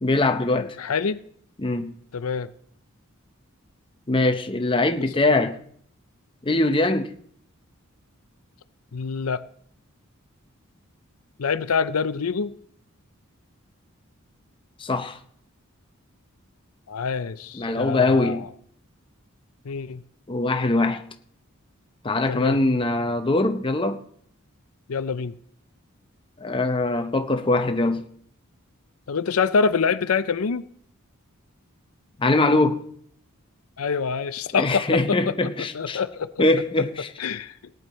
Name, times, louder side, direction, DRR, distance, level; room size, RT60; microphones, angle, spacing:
voice 1, 0.0-0.8 1.6-1.9 4.1-5.6 6.4-7.1 14.8-15.2 17.5-18.5 20.3-21.0 22.0-24.0 26.4-28.0 32.2-32.8 34.6-36.0 36.4-37.1, left 2 dB, 25° left, 0.7 m, -22 dB
voice 2, 0.5-1.2 2.1-2.5 8.9-9.4 11.4-12.6 16.9-18.5 19.6-20.0 22.3-22.6 24.9-25.3 29.1-30.6 33.8-35.3 35.7-36.3 37.2-37.5, left 5 dB, 85° left, 0.6 m, -25 dB
18.0 x 9.3 x 4.2 m
head